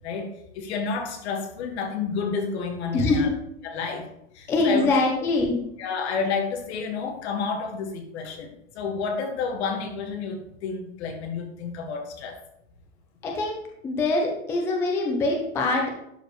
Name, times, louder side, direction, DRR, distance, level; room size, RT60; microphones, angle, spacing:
voice 1, 0.0-3.3 3.6-4.1 4.3-4.9 5.8-12.4, left 5 dB, 65° left, 4 dB, 1.6 m, -30 dB
voice 2, 2.9-3.3 4.5-5.6 13.2-13.6 13.8-15.9, left 2 dB, 10° left, 1 dB, 0.4 m, -23 dB
11.5 x 4.7 x 3.0 m, 0.77 s
supercardioid pair, 170°, 35 cm